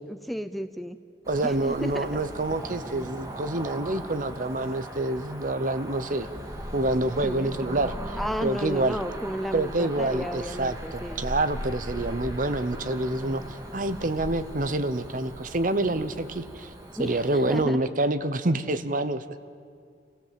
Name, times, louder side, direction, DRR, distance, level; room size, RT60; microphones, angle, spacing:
voice 1, 0.1-1.0 1.4-2.1 7.2-7.5 8.2-11.2 17.0-17.8, equal, ahead, 10 dB, 0.5 m, -33 dB
Cricket / Motor vehicle (road), 1.2-17.6, equal, 20° right, 2.0 m, -39 dB
voice 2, 1.3-6.3 6.7-9.0 9.5-16.7 17.0-19.4, right 2 dB, 45° right, 11 dB, 0.9 m, -27 dB
28.5 x 16.0 x 7.6 m, 2.2 s
head